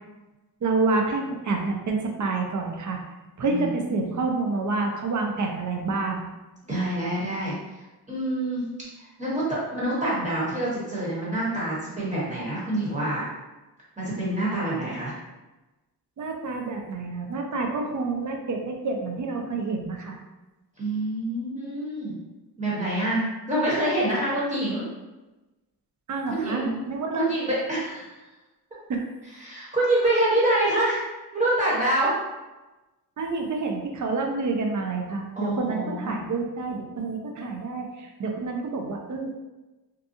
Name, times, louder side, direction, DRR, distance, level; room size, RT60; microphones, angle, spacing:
voice 1, 0.6-3.0 3.4-6.3 16.2-20.2 26.1-27.3 28.9-29.1 33.2-39.4, right 3 dB, 50° right, 2 dB, 0.5 m, -28 dB
voice 2, 3.4-4.1 6.6-7.8 8.1-8.7 9.0-13.3 14.0-15.1 20.8-22.2 22.6-24.8 26.3-26.7 27.1-28.1 29.4-31.0 31.3-32.1 35.4-36.1, right 1 dB, 20° right, -8 dB, 1.2 m, -26 dB
2.7 x 2.3 x 2.6 m, 1.1 s
wide cardioid pair, 90°, 38 cm